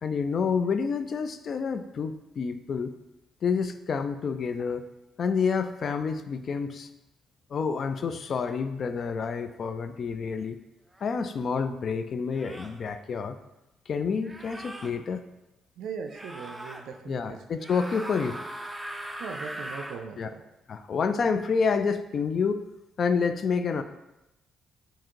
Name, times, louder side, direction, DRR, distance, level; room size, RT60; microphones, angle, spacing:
voice 1, 0.0-3.0 3.4-4.9 5.2-6.9 7.5-10.6 11.0-13.4 13.9-15.2 17.1-18.4 20.2-20.3 20.7-22.7 23.0-23.8, left 5 dB, 50° left, 10 dB, 0.3 m, -28 dB
sound 1, 10.9-11.1 12.3-12.8 14.2-14.9 16.1-16.8 17.6-20.0, right 1 dB, 10° right, 0.5 m, -39 dB
voice 2, 15.8-17.4 19.2-20.4, right 6 dB, 80° right, 5 dB, 0.4 m, -39 dB
3.7 x 2.7 x 4.4 m, 0.94 s
cardioid pair, 90°, 0 cm